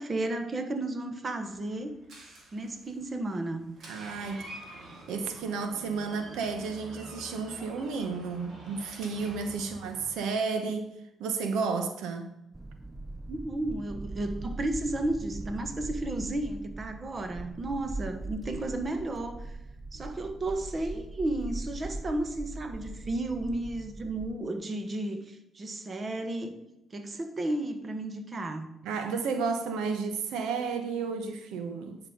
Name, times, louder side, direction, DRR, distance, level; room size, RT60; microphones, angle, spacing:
voice 1, 0.0-2.0 2.5-3.7 9.6-9.9 13.3-19.6 19.9-26.5 26.9-28.7, right 2 dB, 35° right, 1.3 m, -33 dB
Door, 1.4-10.1, right 2 dB, 65° right, 2.7 m, -48 dB
voice 2, 3.9-4.5 5.1-10.9 11.2-12.3 28.8-32.0, right 4 dB, 90° right, 0.9 m, -32 dB
sound 1, 12.5-24.4, right 2 dB, 15° right, 0.5 m, -41 dB
10.0 x 5.9 x 5.1 m
cardioid pair, 90°, 0 cm